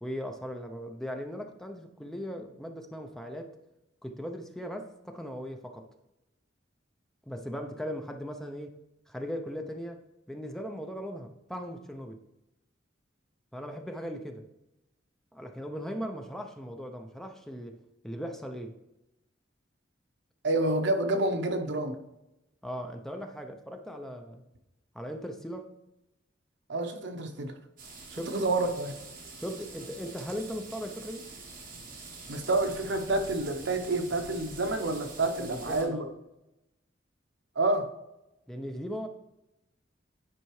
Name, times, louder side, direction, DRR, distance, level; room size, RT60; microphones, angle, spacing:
voice 1, 0.0-3.5 4.0-5.9 7.3-8.7 9.1-10.0 10.3-12.2 13.5-14.5 15.3-17.8 18.0-18.7 22.6-24.4 24.9-25.7 28.1-28.5 29.4-31.3 35.4-36.1 38.5-39.1, equal, ahead, 5 dB, 0.5 m, -38 dB
voice 2, 20.4-22.0 26.7-27.6 28.1-28.9 32.3-36.1 37.6-37.9, right 2 dB, 70° right, 6 dB, 0.8 m, -28 dB
sound 1, 27.8-35.8, right 3 dB, 50° right, 1.8 m, -46 dB
9.9 x 4.6 x 3.1 m, 0.91 s
head